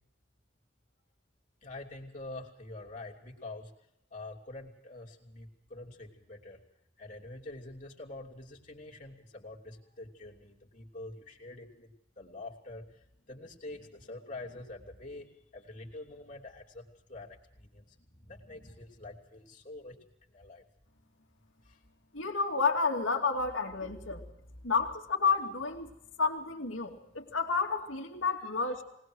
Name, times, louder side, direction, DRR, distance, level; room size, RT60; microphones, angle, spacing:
voice 1, 1.6-3.7 4.1-6.6 7.0-20.6 21.6-21.8 24.2-24.3, left 2 dB, 40° left, 0 dB, 3.0 m, -46 dB
voice 2, 22.1-24.2 24.6-25.9 26.2-28.8, left 4 dB, 90° left, 3 dB, 2.6 m, -30 dB
21.5 x 19.5 x 6.3 m, 0.77 s
head